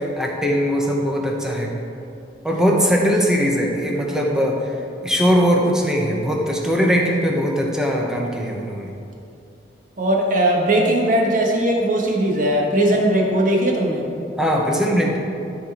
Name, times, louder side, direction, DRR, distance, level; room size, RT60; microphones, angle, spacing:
voice 1, 0.0-1.7 2.4-4.7 5.0-8.9 14.4-15.2, equal, 5° right, -1 dB, 1.0 m, -20 dB
voice 2, 10.0-14.0, right 1 dB, 45° right, -1 dB, 1.3 m, -19 dB
13.0 x 4.5 x 4.5 m, 2.6 s
head